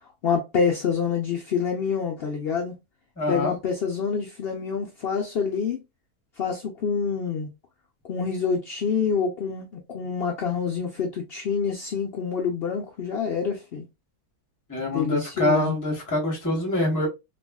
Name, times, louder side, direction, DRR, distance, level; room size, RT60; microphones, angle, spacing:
voice 1, 0.2-2.7 3.3-5.8 6.4-7.5 8.1-13.8 14.9-15.8, left 6 dB, 80° left, 0.5 m, -27 dB
voice 2, 3.2-3.6 14.7-17.1, left 1 dB, 15° left, 0.8 m, -25 dB
3.3 x 2.3 x 2.2 m
omnidirectional pair, 1.6 m